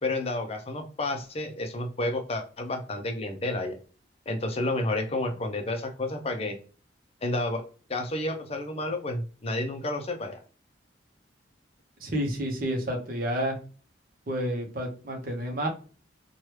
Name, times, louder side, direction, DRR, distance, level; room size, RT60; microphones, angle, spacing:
voice 1, 0.0-3.8 4.3-6.6 7.2-7.6 7.9-10.4, left 2 dB, 30° left, 6 dB, 0.5 m, -30 dB
voice 2, 12.0-13.6 14.3-15.7, equal, 50° right, 2 dB, 0.8 m, -30 dB
3.0 x 2.3 x 3.1 m, 0.38 s
head